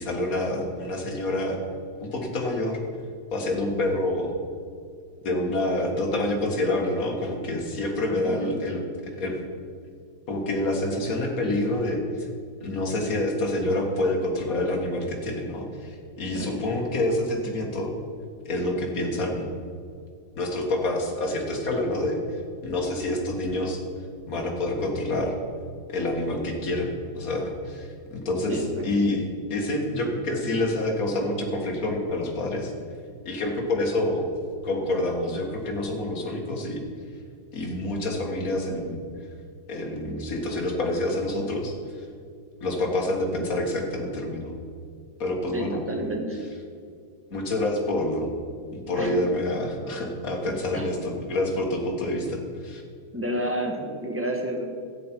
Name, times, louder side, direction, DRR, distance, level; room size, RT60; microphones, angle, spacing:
voice 1, 0.0-1.6 2.0-2.8 3.3-4.3 5.2-9.4 10.3-12.3 12.6-17.9 18.5-19.5 20.4-22.2 22.6-23.8 24.3-25.4 25.9-29.2 29.5-32.7 33.3-34.3 34.6-36.8 37.5-39.0 39.7-41.8 42.6-44.5 45.2-45.8 47.3-48.3 48.7-52.8, left 1 dB, 50° left, 1 dB, 2.0 m, -27 dB
voice 2, 8.1-8.6 16.3-16.6 28.5-28.8 45.5-46.4 49.0-49.2 50.7-50.9 53.1-54.6, right 1 dB, 10° right, 1 dB, 1.1 m, -30 dB
13.5 x 9.3 x 4.5 m, 2.3 s
omnidirectional pair, 2.0 m